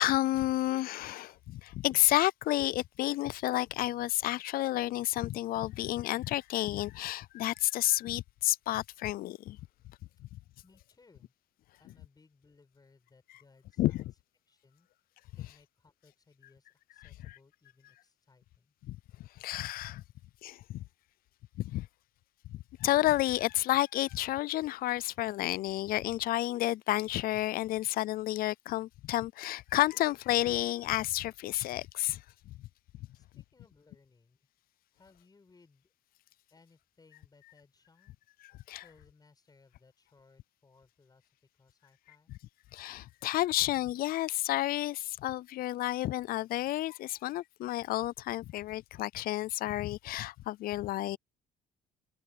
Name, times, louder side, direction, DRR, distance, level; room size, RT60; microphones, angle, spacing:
voice 1, 0.0-9.6 13.8-14.1 17.3-17.4 18.8-19.0 19.4-20.0 20.4-20.8 21.6-21.9 22.5-32.2 38.7-38.8 42.3-42.4 42.7-51.2, left 15 dB, 60° left, 0.4 m, -31 dB
voice 2, 10.6-11.3 11.8-14.1 14.5-14.9 15.3-18.8 33.1-34.4 34.9-35.9 36.5-38.2 38.8-41.3 41.6-42.3, left 4 dB, 25° left, 7.1 m, -64 dB
cardioid pair, 110°, 17 cm